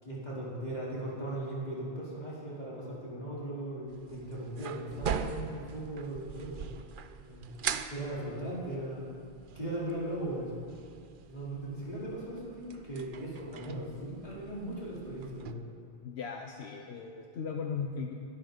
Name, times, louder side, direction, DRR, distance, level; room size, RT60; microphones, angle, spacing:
voice 1, 0.0-6.7 7.2-7.5 7.9-9.1 9.5-10.5 11.3-15.6, right 1 dB, 40° left, -8 dB, 4.3 m, -38 dB
sound 1, 3.9-15.5, right 7 dB, 55° right, 0.7 m, -42 dB
voice 2, 16.0-18.1, left 6 dB, 80° left, 2 dB, 1.1 m, -37 dB
21.5 x 13.0 x 3.9 m, 2.4 s
omnidirectional pair, 1.1 m